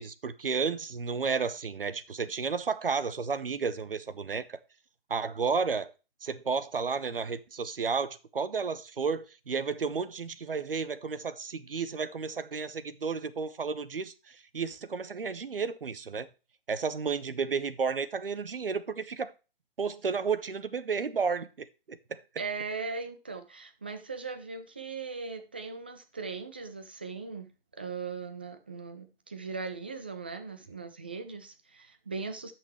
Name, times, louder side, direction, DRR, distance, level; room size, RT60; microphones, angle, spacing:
voice 1, 0.0-4.6 5.1-5.9 6.2-16.3 16.7-19.3 19.8-22.2, right 5 dB, 70° right, 1.0 m, -32 dB
voice 2, 22.4-27.5 27.8-32.5, right 4 dB, 10° right, 0.3 m, -39 dB
12.5 x 6.0 x 3.1 m
figure-of-eight pair, 130°, 29 cm